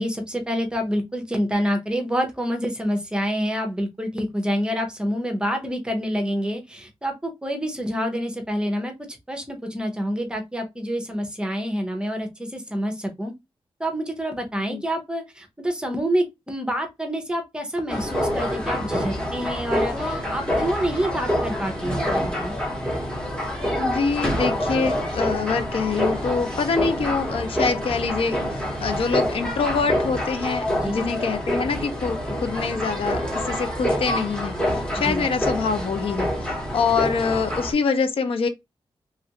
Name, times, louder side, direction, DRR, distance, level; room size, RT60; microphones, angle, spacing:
voice 1, 0.0-13.3 13.8-22.6 30.8-31.0 35.0-35.3, equal, 10° right, 0.7 m, -27 dB
sound 1, 17.9-37.7, equal, 10° left, 1.0 m, -26 dB
voice 2, 23.8-38.5, left 5 dB, 75° left, 0.5 m, -25 dB
3.1 x 2.4 x 2.8 m
wide cardioid pair, 175°, 9 cm